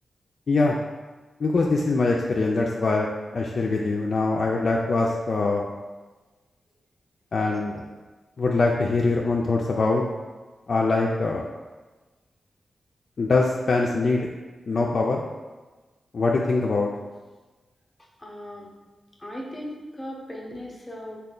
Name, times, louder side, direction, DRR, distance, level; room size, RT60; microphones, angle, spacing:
voice 1, 0.5-0.8 1.4-3.1 3.3-5.7 7.3-7.8 8.4-10.0 10.7-11.4 13.2-14.3 14.7-15.2 16.1-16.9, left 3 dB, 65° left, -2 dB, 0.3 m, -23 dB
voice 2, 18.2-18.7 19.2-21.2, equal, 25° left, -2 dB, 0.7 m, -38 dB
3.2 x 2.2 x 3.7 m, 1.3 s
cardioid pair, 50°, 0 cm